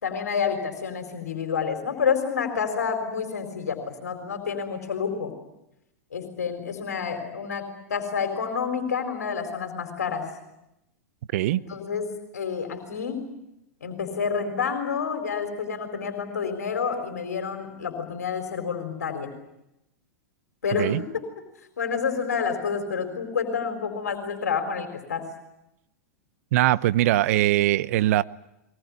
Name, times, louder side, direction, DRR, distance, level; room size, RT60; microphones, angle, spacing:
voice 1, 0.0-5.3 6.1-10.3 11.5-13.3 13.8-19.3 20.6-21.1 21.8-25.3, left 6 dB, 85° left, 4.1 m, -29 dB
voice 2, 26.5-28.2, right 15 dB, 65° right, 0.9 m, -21 dB
23.0 x 21.0 x 9.6 m
hypercardioid pair, 110°, 9 cm